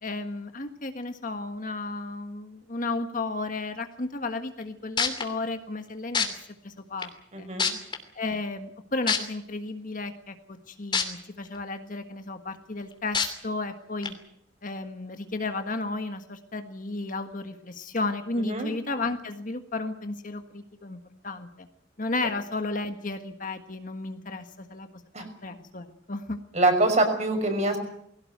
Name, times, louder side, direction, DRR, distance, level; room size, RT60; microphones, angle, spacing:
voice 1, 0.0-6.3 6.6-7.1 7.3-7.5 8.1-14.1 14.6-21.0 21.2-21.7 22.0-24.9 25.4-26.4, left 3 dB, 45° left, 7 dB, 1.6 m, -33 dB
sound 1, 4.6-4.7 5.0-5.2 6.1-6.3 7.0-7.1 7.6-8.0 9.1-9.2 10.9-11.0 11.5-11.6 13.1-13.3 14.0-14.1, left 6 dB, 25° left, 2.9 m, -24 dB
voice 2, 7.3-7.7 18.4-18.7 25.1-25.3 26.5-27.8, right 2 dB, 35° right, 5 dB, 5.9 m, -24 dB
21.0 x 17.5 x 9.4 m, 0.71 s
head